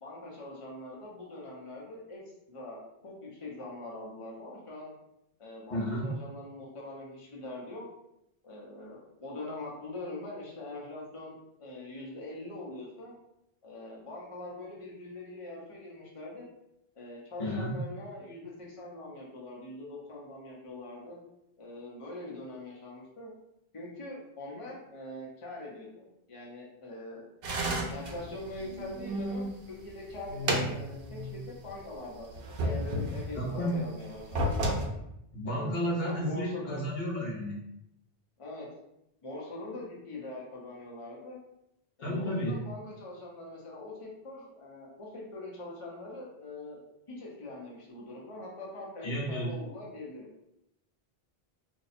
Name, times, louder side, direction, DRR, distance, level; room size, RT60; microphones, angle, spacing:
voice 1, 0.0-2.2 2.5-4.9 5.4-7.8 8.4-13.1 13.6-16.5 16.9-21.2 21.6-23.3 23.7-27.2 27.9-34.7 35.4-36.8 38.4-38.7 39.2-41.4 42.0-46.8 47.1-50.3, left 2 dB, 35° left, -4 dB, 0.8 m, -43 dB
voice 2, 5.7-6.1 17.4-17.8 33.3-33.8 35.3-37.6 42.0-42.6 49.0-49.5, equal, 70° left, -4 dB, 1.1 m, -32 dB
sound 1, 27.4-29.5 30.0-31.4 31.7-31.8 32.3-33.5 34.1-34.9, right 1 dB, 65° right, 0.8 m, -32 dB
2.6 x 2.3 x 4.1 m, 0.83 s
omnidirectional pair, 1.1 m